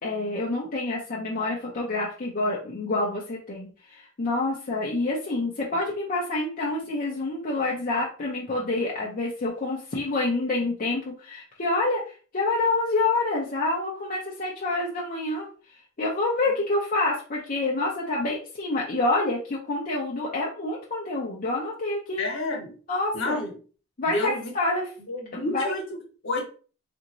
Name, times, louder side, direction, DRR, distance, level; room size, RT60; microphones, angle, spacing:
voice 1, 0.0-15.5 16.0-22.2 22.9-23.4 24.0-24.9 25.3-25.7, left 2 dB, 45° left, -4 dB, 0.7 m, -27 dB
voice 2, 22.2-22.7 23.1-23.5 24.0-24.5 25.1-26.4, left 2 dB, 65° left, 0 dB, 1.3 m, -30 dB
3.5 x 2.6 x 3.0 m, 0.38 s
head